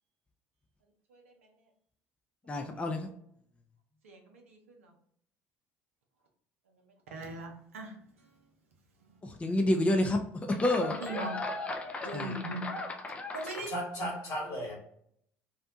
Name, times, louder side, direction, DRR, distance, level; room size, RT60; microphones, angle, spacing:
voice 1, 1.1-1.5 4.0-4.9 7.1-8.3 9.0-9.1 10.8-11.4 12.0-12.8 13.3-13.7, right 2 dB, 90° right, 0.5 m, -40 dB
voice 2, 2.5-3.1 9.2-13.7, left 1 dB, 15° left, 0.4 m, -31 dB
voice 3, 13.4-14.8, equal, 60° left, 1.4 m, -36 dB
2.7 x 2.1 x 2.6 m
hypercardioid pair, 65°, 7 cm